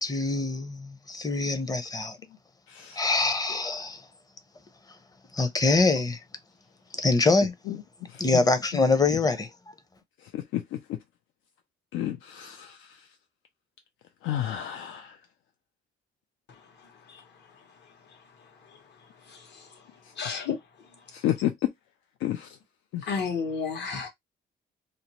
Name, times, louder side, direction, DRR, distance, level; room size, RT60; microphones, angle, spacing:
voice 1, 0.0-2.2 3.0-4.0 5.3-6.2 6.9-7.5 8.2-9.5, left 3 dB, 20° left, 0.6 m, -24 dB
voice 2, 2.7-3.0 7.7-7.8 8.1-8.4 10.3-11.0 11.9-13.0 14.2-15.2 21.1-21.7 22.2-22.6 22.9-23.1, left 12 dB, 85° left, 0.4 m, -31 dB
voice 3, 20.2-20.6 23.1-24.1, left 5 dB, 60° left, 1.1 m, -31 dB
2.6 x 2.1 x 2.9 m
cardioid pair, 90°, 20 cm